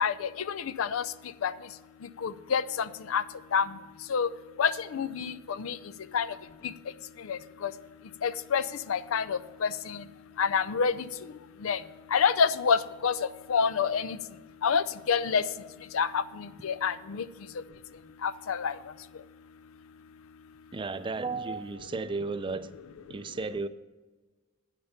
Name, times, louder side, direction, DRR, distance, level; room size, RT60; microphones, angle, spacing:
voice 1, 0.0-1.0 1.4-1.5 2.2-2.6 3.1-3.2 3.5-3.7 4.1-4.3 4.6-5.3 5.6-5.8 6.1-6.2 7.3-7.4 8.2-8.6 8.9-10.0 10.4-10.9 11.6-11.8 12.1-13.1 13.5-14.2 14.6-15.4 15.9-16.2 16.6-17.2 18.2-18.7, left 6 dB, 70° left, 15 dB, 0.5 m, -27 dB
voice 2, 20.7-22.7 23.1-23.7, right 3 dB, 25° right, 12 dB, 0.4 m, -33 dB
10.0 x 6.6 x 5.7 m, 1.3 s
head